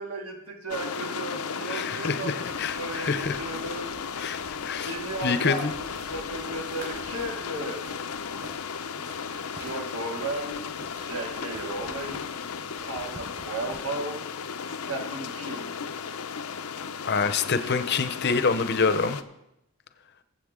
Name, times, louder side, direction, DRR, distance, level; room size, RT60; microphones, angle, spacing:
voice 1, 0.0-2.5 2.8-3.9 4.8-5.6 6.1-7.8 9.3-10.6 11.0-12.2 12.8-14.2 14.7-15.7, right 2 dB, 85° right, 0 dB, 2.4 m, -35 dB
sound 1, 0.7-19.2, left 6 dB, 90° left, 0.6 m, -35 dB
voice 2, 1.6-3.4 4.2-5.0 5.2-5.7 17.1-19.2, left 5 dB, 50° left, 11 dB, 0.7 m, -26 dB
sound 2, 2.4-13.8, right 1 dB, 45° right, 3.9 m, -49 dB
21.5 x 7.7 x 3.7 m, 0.85 s
head